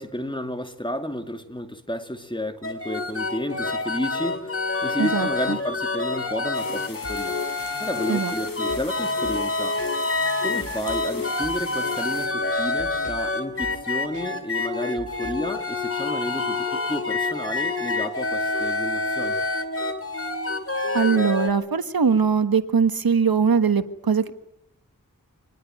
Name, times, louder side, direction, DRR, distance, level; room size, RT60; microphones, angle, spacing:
voice 1, 0.0-4.6 4.8-7.4 7.8-9.8 10.4-19.4, left 1 dB, 15° left, 2.7 m, -31 dB
sound 1, 2.6-21.5, left 3 dB, 40° left, 3.0 m, -27 dB
voice 2, 5.0-5.6 8.1-8.3 20.9-24.3, right 6 dB, 75° right, 1.4 m, -21 dB
sound 2, 6.5-12.3, left 4 dB, 65° left, 1.8 m, -42 dB
sound 3, 7.0-7.3 7.6-7.7 8.7-9.0 9.2-9.5 9.8-9.9 10.6-11.1 11.4-11.7 12.0-12.1 12.8-13.3 13.6-13.9 14.1-14.3 15.0-15.5, right 3 dB, 55° right, 2.4 m, -42 dB
26.0 x 20.0 x 9.4 m
wide cardioid pair, 55°, 36 cm